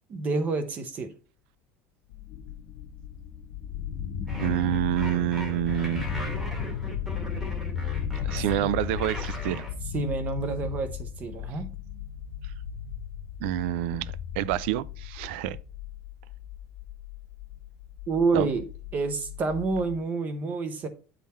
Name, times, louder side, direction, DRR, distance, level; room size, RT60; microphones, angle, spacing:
voice 1, 0.1-1.1 8.6-8.7 9.9-11.7 18.1-18.6 18.9-20.9, right 3 dB, 25° right, 0.6 m, -28 dB
sound 1, 2.1-20.0, left 7 dB, 50° left, 0.8 m, -36 dB
sound 2, 4.3-9.7, left 1 dB, 5° right, 1.1 m, -39 dB
voice 2, 4.4-6.0 8.2-9.7 13.4-15.6 18.3-18.5, right 14 dB, 90° right, 0.4 m, -28 dB
8.4 x 3.8 x 4.2 m
cardioid pair, 180°, 6 cm